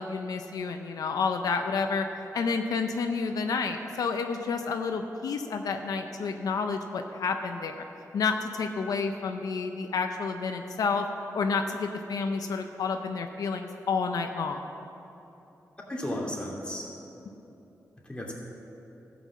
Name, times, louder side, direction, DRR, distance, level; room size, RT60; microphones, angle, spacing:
voice 1, 0.0-2.1 2.3-7.8 8.1-11.1 11.3-14.7, left 5 dB, 85° left, 5 dB, 0.6 m, -30 dB
voice 2, 15.9-16.9 18.1-18.3, left 1 dB, 15° left, -3 dB, 2.6 m, -34 dB
14.0 x 6.0 x 7.3 m, 3.0 s
cardioid pair, 80°, 6 cm